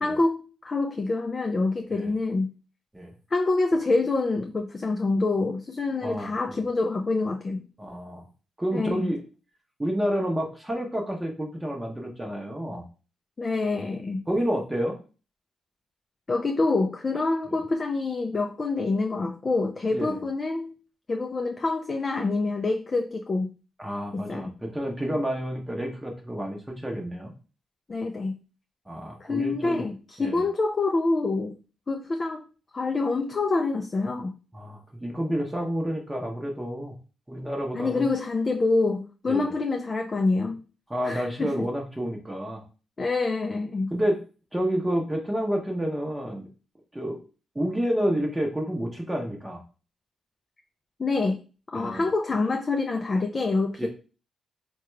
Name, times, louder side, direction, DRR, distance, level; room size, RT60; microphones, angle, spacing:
voice 1, 0.0-2.5 3.3-7.6 8.7-9.1 13.4-14.2 16.3-20.7 21.1-23.5 24.1-24.5 27.9-28.3 29.2-31.6 31.9-32.4 32.7-34.3 37.7-40.6 41.0-41.7 43.0-43.9 51.0-51.4 51.7-53.9, left 3 dB, 35° left, 0.3 m, -26 dB
voice 2, 6.0-6.6 7.8-8.2 8.6-9.2 9.8-12.8 14.3-15.0 17.5-17.6 19.9-20.2 23.8-27.3 28.9-29.9 30.2-30.4 34.5-37.0 37.3-38.1 39.3-39.5 40.9-42.6 43.9-44.2 44.5-46.5 46.9-47.2 47.5-49.6 51.7-52.0 53.8-53.9, equal, 10° right, 0.7 m, -29 dB
3.6 x 2.2 x 3.1 m
cardioid pair, 80°, 0 cm